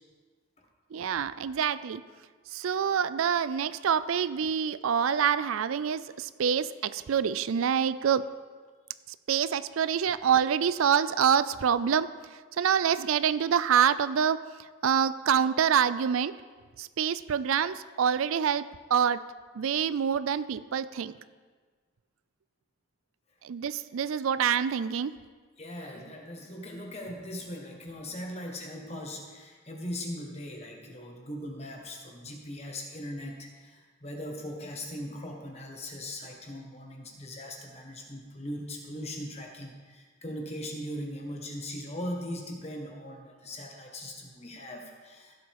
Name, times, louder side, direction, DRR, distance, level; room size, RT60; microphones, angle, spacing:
voice 1, 0.9-2.0 2.5-8.2 9.3-12.1 12.6-14.4 14.8-16.4 16.8-18.6 18.9-19.2 19.5-21.1 23.4-25.1, right 8 dB, 75° right, 15 dB, 0.4 m, -26 dB
voice 2, 25.6-45.3, left 1 dB, 30° left, 1 dB, 1.4 m, -39 dB
16.0 x 7.4 x 3.7 m, 1.5 s
head